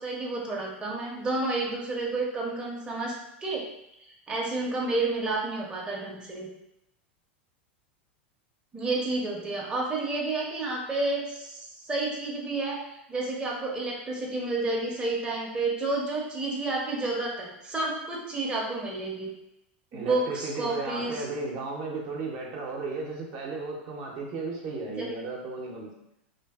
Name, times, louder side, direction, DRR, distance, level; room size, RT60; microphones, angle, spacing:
voice 1, 0.0-3.1 3.4-3.7 4.3-6.5 8.7-12.8 13.1-19.3 19.9-21.2 25.0-25.1, right 2 dB, 15° right, -3 dB, 0.6 m, -30 dB
voice 2, 19.9-25.9, right 3 dB, 50° right, -1 dB, 0.7 m, -34 dB
2.5 x 2.5 x 2.3 m, 0.83 s
hypercardioid pair, 100°, 6 cm